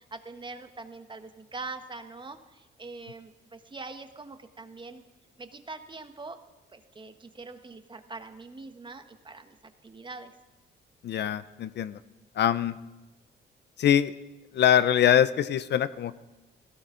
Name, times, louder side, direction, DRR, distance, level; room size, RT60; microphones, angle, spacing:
voice 1, 0.0-5.0 5.4-6.4 6.7-10.3, right 3 dB, 25° right, 8 dB, 1.3 m, -43 dB
voice 2, 11.0-12.0 12.4-12.8 13.8-14.1 14.5-16.2, left 10 dB, 60° left, 15 dB, 0.6 m, -23 dB
17.5 x 16.0 x 3.9 m, 1.1 s
cardioid pair, 90°, 20 cm